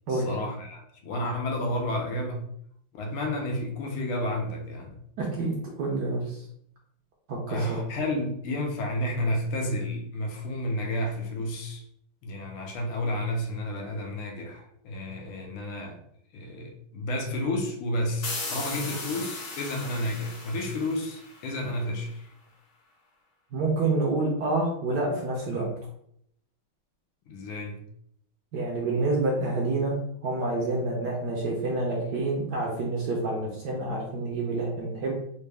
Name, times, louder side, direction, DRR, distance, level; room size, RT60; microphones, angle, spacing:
voice 1, 0.1-2.4 2.9-5.0 7.5-11.8 12.2-16.0 16.3-22.3 27.3-27.8, left 1 dB, 80° left, 2 dB, 1.5 m, -31 dB
voice 2, 5.2-6.4 7.3-7.6 23.5-25.7 28.5-29.9 30.2-35.1, right 2 dB, 65° right, -2 dB, 1.0 m, -28 dB
sound 1, 18.2-21.8, left 3 dB, 55° left, 1.3 m, -37 dB
4.1 x 2.2 x 3.3 m, 0.70 s
omnidirectional pair, 2.4 m